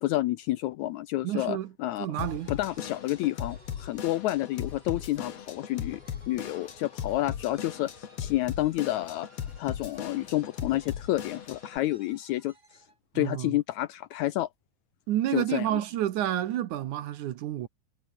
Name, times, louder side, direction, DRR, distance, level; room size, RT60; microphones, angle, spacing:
voice 1, 0.0-2.1 2.5-6.0 6.3-9.3 9.6-12.5 13.1-14.5 15.3-15.8, left 16 dB, 90° left, 1.6 m, -29 dB
voice 2, 1.2-1.7 2.0-2.5 13.1-13.6 15.1-17.7, right 12 dB, 65° right, 2.3 m, -29 dB
Drum kit / Drum, 2.2-11.8, left 8 dB, 50° left, 2.8 m, -38 dB
sound 1, 2.2-13.0, right 3 dB, 25° right, 4.6 m, -58 dB
omnidirectional pair, 4.1 m